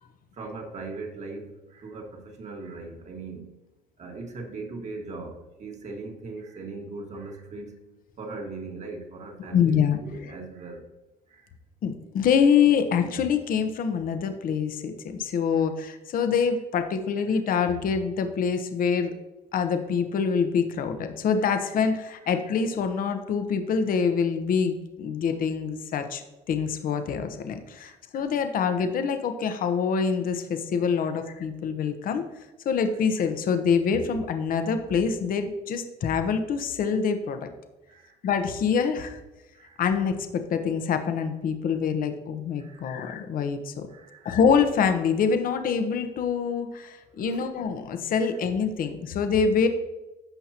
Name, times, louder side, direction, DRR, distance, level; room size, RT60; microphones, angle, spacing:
voice 1, 0.3-3.5 4.0-7.8 8.2-10.8 11.3-11.5 15.5-15.6 17.3-17.4 21.4-21.5 22.2-22.3 27.8-28.0 28.5-28.6 31.0-31.1 37.9-38.1 39.5-39.8 42.6-43.0 43.9-44.3 47.1-47.5, right 3 dB, 45° right, 1 dB, 1.8 m, -40 dB
voice 2, 9.5-10.0 11.8-19.1 19.5-32.2 32.6-37.5 38.2-39.2 39.8-43.9 44.2-49.7, left 6 dB, 55° left, 8 dB, 0.9 m, -25 dB
15.0 x 5.5 x 2.9 m, 1.0 s
cardioid pair, 110°, 17 cm